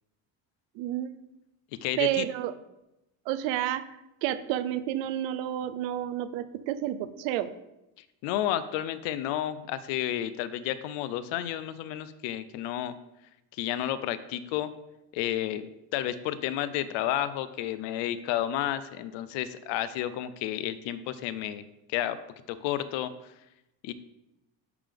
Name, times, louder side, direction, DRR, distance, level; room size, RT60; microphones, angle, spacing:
voice 1, 0.7-1.2 2.0-2.5 3.3-3.8 4.2-7.5, right 12 dB, 85° right, 13 dB, 0.6 m, -30 dB
voice 2, 1.8-2.2 8.2-12.9 13.6-14.7 15.1-21.6 21.9-22.2 22.5-23.1 23.8-23.9, left 12 dB, 80° left, 14 dB, 0.6 m, -31 dB
10.5 x 3.7 x 3.4 m, 0.91 s
cardioid pair, 160°, 43 cm